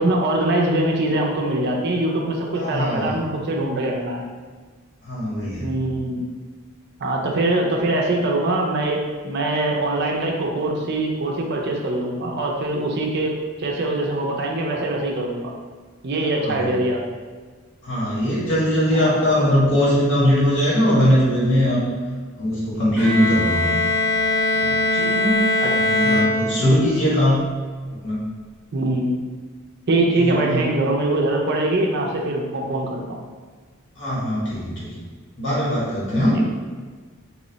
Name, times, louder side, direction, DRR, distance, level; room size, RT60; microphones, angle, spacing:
voice 1, 0.0-4.3 5.6-6.3 7.0-15.5 16.0-17.0 18.9-19.1 19.4-19.5 25.0-25.1 25.6-25.7 26.0-26.2 26.6-26.7 28.7-29.1 29.9-33.2 36.3-36.4, right 2 dB, 55° right, 0 dB, 0.5 m, -23 dB
voice 2, 2.5-3.1 5.1-5.7 16.4-16.7 17.8-21.8 22.3-23.7 24.5-25.4 25.7-27.4 28.0-28.3 30.1-30.6 34.0-34.9 35.4-36.4, equal, 60° left, -7 dB, 1.3 m, -20 dB
Bowed string instrument, 23.0-27.0, left 2 dB, 10° right, 0.9 m, -21 dB
3.0 x 2.0 x 3.9 m, 1.5 s
head